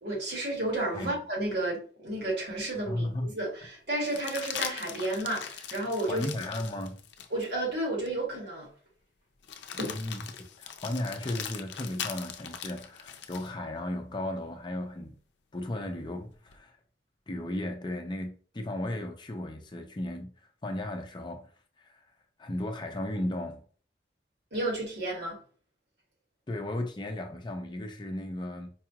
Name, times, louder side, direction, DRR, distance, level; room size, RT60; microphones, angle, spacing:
voice 1, 0.0-3.1 3.3-6.3 7.3-8.7 9.8-10.0 24.5-25.4, right 1 dB, 70° right, 1.8 m, -32 dB
sound 1, 2.5-2.6 4.0-7.5 8.1-8.2 9.4-13.5 15.7-16.6, left 8 dB, 90° left, 0.5 m, -40 dB
voice 2, 2.9-3.3 6.1-7.0 9.8-10.2 10.6-15.2 15.5-16.8 17.3-20.3 20.6-21.5 21.8-22.1 22.4-23.6 26.5-28.7, left 1 dB, 25° left, 0.5 m, -35 dB
4.7 x 2.3 x 2.9 m
head